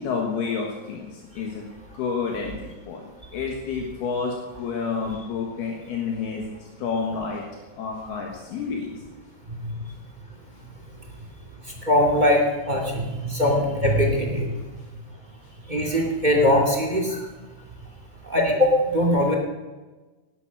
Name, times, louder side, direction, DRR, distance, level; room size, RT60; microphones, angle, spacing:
voice 1, 0.0-1.6 1.9-3.0 3.3-7.4 7.8-9.0, left 5 dB, 75° left, 0 dB, 3.6 m, -29 dB
voice 2, 11.8-14.6 15.7-17.2 18.3-19.3, left 1 dB, 15° right, 1 dB, 1.6 m, -21 dB
18.5 x 11.5 x 6.2 m, 1.2 s
omnidirectional pair, 4.7 m